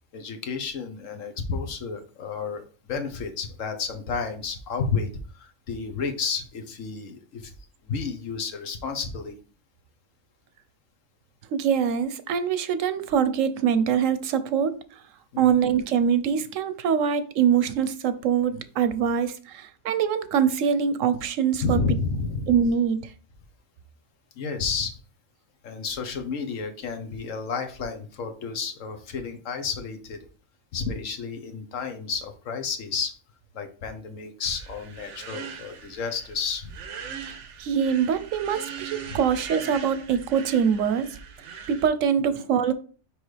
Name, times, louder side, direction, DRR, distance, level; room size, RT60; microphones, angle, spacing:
voice 1, 0.1-7.5 7.8-9.4 15.3-15.6 21.6-22.5 24.4-25.0 25.6-30.2 30.7-33.2 33.5-36.8 39.1-39.2, left 5 dB, 80° left, 1.4 m, -31 dB
voice 2, 11.5-14.7 15.4-21.8 22.5-23.0 37.6-41.1 41.7-42.7, right 7 dB, 85° right, 1.1 m, -23 dB
sound 1, 34.4-41.9, right 6 dB, 70° right, 1.2 m, -40 dB
5.9 x 5.1 x 3.2 m
omnidirectional pair, 1.3 m